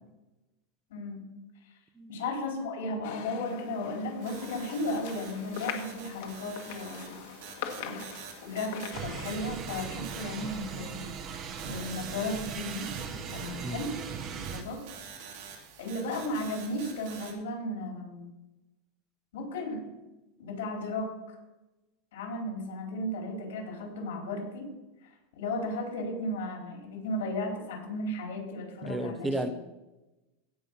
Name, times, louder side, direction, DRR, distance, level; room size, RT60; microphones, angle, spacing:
voice 1, 0.9-1.2 2.1-7.2 7.7-8.0 8.4-11.1 11.6-12.9 13.3-13.9 14.5-14.8 15.8-18.3 19.3-19.8 20.4-21.1 22.1-24.7 25.4-29.5, left 1 dB, 90° left, 0 dB, 4.4 m, -35 dB
sound 1, 3.0-9.4, left 9 dB, 60° left, 1.4 m, -42 dB
sound 2, 4.2-17.3, right 7 dB, 65° right, 2.8 m, -47 dB
sound 3, 8.9-14.6, right 6 dB, 30° right, 1.0 m, -39 dB
voice 2, 28.8-29.5, right 1 dB, 10° right, 9 dB, 0.6 m, -33 dB
16.0 x 5.5 x 5.5 m, 1.0 s
supercardioid pair, 170°, 0 cm